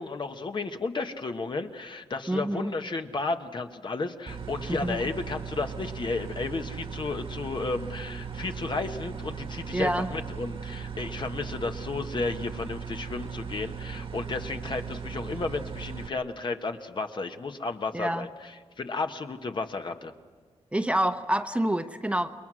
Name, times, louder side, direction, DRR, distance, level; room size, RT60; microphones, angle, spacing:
voice 1, 0.0-18.5 18.8-20.1, left 3 dB, 45° left, 6 dB, 1.4 m, -33 dB
voice 2, 2.3-2.7 4.8-5.0 9.7-10.1 17.9-18.3 20.7-22.3, right 1 dB, 10° right, 7 dB, 1.0 m, -27 dB
sound 1, 4.3-16.1, right 6 dB, 50° right, 1.6 m, -38 dB
29.0 x 22.0 x 6.3 m, 1.4 s
cardioid pair, 90°, 11 cm